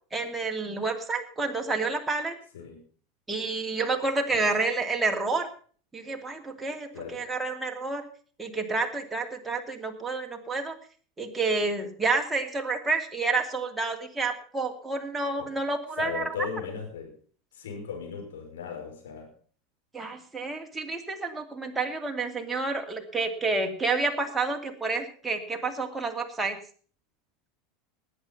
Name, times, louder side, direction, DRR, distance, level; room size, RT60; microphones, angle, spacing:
voice 1, 0.1-2.3 3.3-5.5 5.9-8.0 8.4-10.8 11.2-16.2 19.9-26.6, right 3 dB, 10° right, 3 dB, 2.7 m, -29 dB
voice 2, 6.9-7.3 15.4-15.5 16.0-17.2 17.5-19.3, left 6 dB, 70° left, 2 dB, 5.5 m, -37 dB
19.0 x 8.8 x 5.5 m, 0.43 s
figure-of-eight pair, 80°, 0 cm